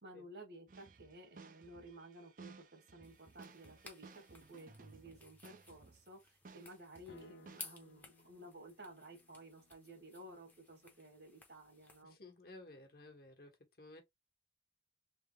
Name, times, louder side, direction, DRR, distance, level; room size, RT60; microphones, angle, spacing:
voice 1, 0.0-12.1, right 1 dB, 70° right, 1.6 m, -55 dB
sound 1, 0.7-6.1 6.4-7.7, right 4 dB, 50° right, 0.5 m, -58 dB
sound 2, 3.0-12.0, left 3 dB, 10° left, 0.8 m, -58 dB
sound 3, 7.1-11.2, left 3 dB, 80° left, 0.5 m, -66 dB
voice 2, 12.0-14.0, left 2 dB, 55° left, 1.2 m, -55 dB
3.4 x 3.2 x 3.0 m
head